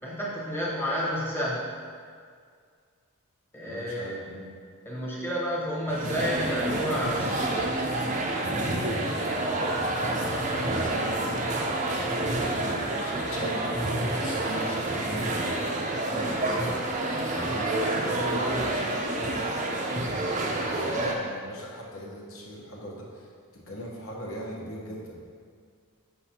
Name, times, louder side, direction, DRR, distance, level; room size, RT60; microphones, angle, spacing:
voice 1, 0.0-1.7 3.5-4.1 4.8-7.8, equal, 10° left, -6 dB, 1.0 m, -30 dB
voice 2, 3.6-4.5 9.3-9.9 10.5-11.8 12.5-19.5 20.5-23.3 23.7-25.2, equal, 65° left, -3 dB, 1.1 m, -39 dB
sound 1, 5.9-21.2, right 2 dB, 35° right, 0.5 m, -28 dB
6.2 x 5.7 x 2.8 m, 2.1 s
head